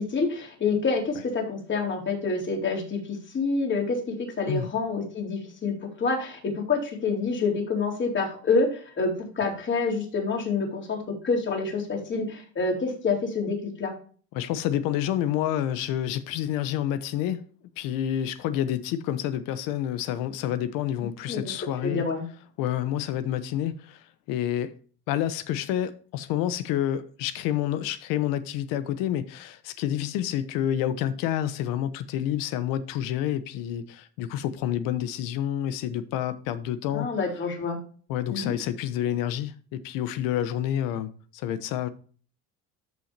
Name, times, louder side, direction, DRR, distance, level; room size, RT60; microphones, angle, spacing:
voice 1, 0.0-4.0 4.4-13.9 21.3-21.6 21.8-22.2 36.9-37.8 38.3-38.5, left 4 dB, 35° left, 3.9 m, -27 dB
voice 2, 14.3-17.4 17.8-22.0 22.6-24.7 25.1-37.1 38.1-41.9, left 11 dB, 75° left, 1.0 m, -28 dB
13.5 x 6.0 x 2.7 m
supercardioid pair, 105°, 34 cm